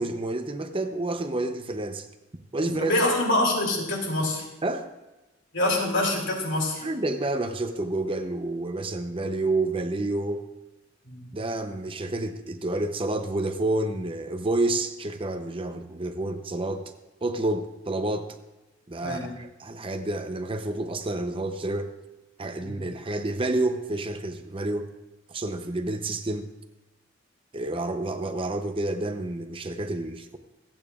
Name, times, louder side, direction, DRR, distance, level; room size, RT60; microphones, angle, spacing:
voice 1, 0.0-2.1 2.5-2.9 4.6-4.9 6.8-10.5 11.3-16.8 17.2-18.4 18.9-21.9 22.4-24.9 25.3-26.5 27.5-30.4, right 2 dB, 25° right, 7 dB, 0.7 m, -29 dB
voice 2, 2.6-4.5 5.5-6.8 11.1-11.3 19.0-19.3 22.6-22.8, left 1 dB, 70° left, -1 dB, 3.1 m, -25 dB
26.5 x 8.9 x 2.4 m, 1.0 s
head